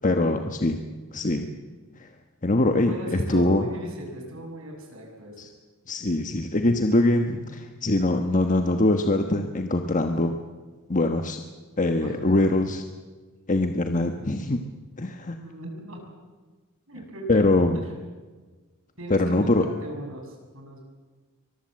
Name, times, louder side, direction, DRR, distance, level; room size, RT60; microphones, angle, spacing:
voice 1, 0.0-0.8 1.1-1.5 2.0-2.1 2.4-3.7 5.4-5.5 5.9-10.3 10.9-11.4 11.8-12.8 13.5-14.6 15.0-15.4 17.3-17.8 19.1-19.6, left 2 dB, 35° left, 5 dB, 1.3 m, -23 dB
voice 2, 2.9-5.5 12.0-12.4 15.4-16.0 16.9-18.0 19.0-20.8, right 1 dB, 65° right, 1 dB, 7.0 m, -38 dB
24.0 x 21.5 x 7.6 m, 1.4 s
head